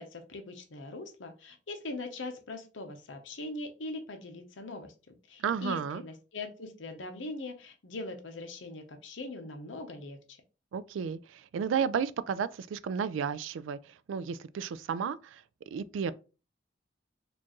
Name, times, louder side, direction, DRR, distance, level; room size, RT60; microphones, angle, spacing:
voice 1, 0.0-10.2, left 2 dB, 75° left, 0.8 m, -41 dB
voice 2, 5.4-6.0 10.7-13.8 14.1-15.4 15.7-16.1, right 7 dB, 80° right, 0.3 m, -32 dB
4.3 x 2.5 x 3.0 m
head